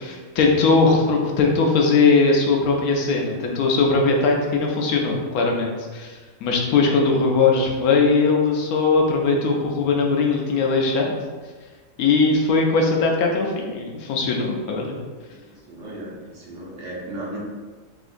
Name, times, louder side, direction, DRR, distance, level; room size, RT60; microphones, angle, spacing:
voice 1, 0.0-6.1 6.4-11.1 12.0-15.0, left 4 dB, 85° left, 1 dB, 1.1 m, -20 dB
voice 2, 15.7-17.4, right 1 dB, 60° right, -5 dB, 1.0 m, -35 dB
3.7 x 2.5 x 2.5 m, 1.4 s
omnidirectional pair, 1.5 m